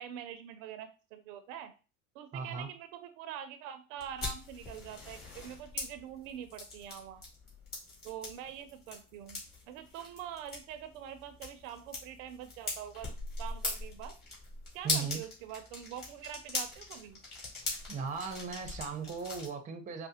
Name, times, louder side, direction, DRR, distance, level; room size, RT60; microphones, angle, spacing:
voice 1, 0.0-1.7 2.1-7.2 8.0-13.1 13.4-14.1 14.7-17.2, right 10 dB, 70° right, 10 dB, 0.6 m, -45 dB
voice 2, 2.3-2.7 14.8-15.2 17.9-20.1, right 6 dB, 20° right, 6 dB, 0.6 m, -37 dB
sound 1, 4.0-19.5, left 2 dB, 25° left, 2.0 m, -41 dB
4.8 x 2.1 x 2.8 m, 0.33 s
supercardioid pair, 115°, 41 cm